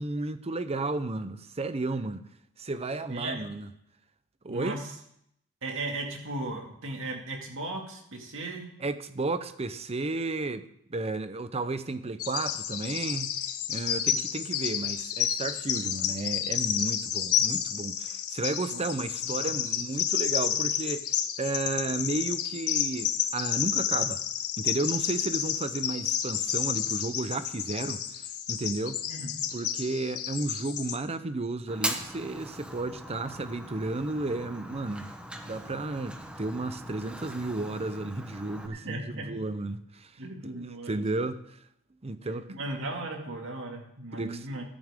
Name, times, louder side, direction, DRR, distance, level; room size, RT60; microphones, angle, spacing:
voice 1, 0.0-2.3 2.6-3.7 4.4-4.8 8.8-13.4 13.7-24.2 24.6-29.0 29.5-35.1 35.4-41.6 42.0-42.5 44.1-44.5, right 2 dB, 30° right, 0.7 m, -33 dB
voice 2, 3.1-3.4 4.5-4.9 5.6-8.7 18.7-18.8 19.4-19.6 29.1-29.3 38.7-39.3 40.2-41.0 42.5-44.6, right 2 dB, 60° right, 2.3 m, -36 dB
Bird vocalization bird call bird song, 12.2-31.0, left 9 dB, 85° left, 1.1 m, -30 dB
Fire, 31.7-38.7, right 1 dB, 5° right, 1.0 m, -40 dB
14.0 x 12.5 x 3.7 m
head